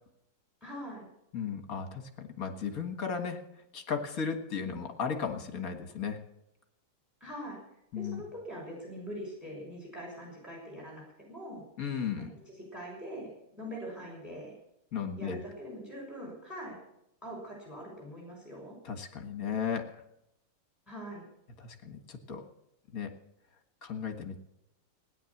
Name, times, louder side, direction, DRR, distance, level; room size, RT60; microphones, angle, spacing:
voice 1, 0.6-1.1 7.2-7.6 7.9-11.6 12.5-13.3 13.6-14.5 15.2-16.8 17.2-18.8 20.9-21.2, equal, ahead, -1 dB, 6.2 m, -43 dB
voice 2, 1.3-6.3 7.9-8.2 11.8-12.3 14.9-15.4 18.8-20.0 21.6-22.5 22.9-23.2 23.8-24.4, left 6 dB, 45° left, 7 dB, 2.0 m, -35 dB
17.0 x 10.5 x 7.2 m, 0.79 s
omnidirectional pair, 2.4 m